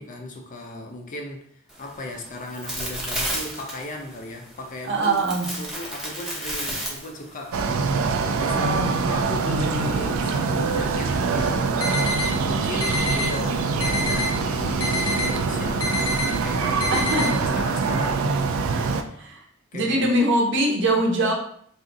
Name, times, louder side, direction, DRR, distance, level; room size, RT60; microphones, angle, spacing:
voice 1, 0.0-1.5 1.8-5.2 5.5-8.1 8.3-12.0 12.4-16.1 16.4-19.3 19.7-20.2, left 1 dB, 40° left, 0.4 m, -36 dB
sound 1, 1.7-7.6, right 1 dB, ahead, 0.7 m, -33 dB
voice 2, 4.8-5.6 8.5-9.0 16.9-17.4 19.2-19.4 19.7-21.3, right 1 dB, 60° right, 0.7 m, -22 dB
sound 2, 7.5-19.0, right 4 dB, 80° right, 0.3 m, -24 dB
sound 3, 11.8-12.3 12.8-13.3 13.8-14.3 14.8-15.3 15.8-16.3 16.8-17.3, left 3 dB, 75° left, 0.9 m, -26 dB
2.6 x 2.4 x 3.7 m
head